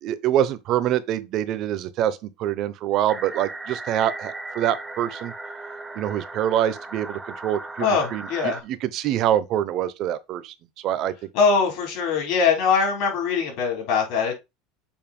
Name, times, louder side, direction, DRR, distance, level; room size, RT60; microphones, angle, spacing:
voice 1, 0.0-5.3 5.9-11.1, right 11 dB, 45° right, 0.7 m, -25 dB
sound 1, 3.1-8.6, right 2 dB, 5° right, 0.6 m, -37 dB
voice 2, 7.8-8.6 11.3-14.3, left 5 dB, 60° left, 3.4 m, -22 dB
7.0 x 2.6 x 5.3 m
supercardioid pair, 150°, 0 cm